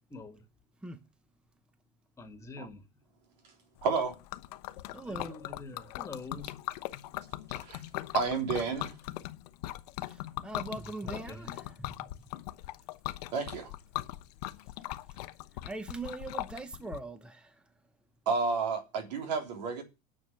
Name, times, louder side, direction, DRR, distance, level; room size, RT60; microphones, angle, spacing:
voice 1, 0.1-0.4 2.2-2.8 4.9-6.5 11.1-11.6, left 3 dB, 15° left, 1.6 m, -45 dB
Liquid, 3.8-17.0, left 16 dB, 75° left, 0.9 m, -40 dB
voice 2, 3.8-4.2 7.6-7.8 8.1-8.9 13.3-13.7 18.2-19.8, right 4 dB, 85° right, 3.4 m, -31 dB
voice 3, 4.9-5.3 10.1-10.2 10.4-11.9 15.6-17.5, right 2 dB, 5° right, 0.8 m, -41 dB
9.8 x 6.2 x 7.9 m
supercardioid pair, 140°, 21 cm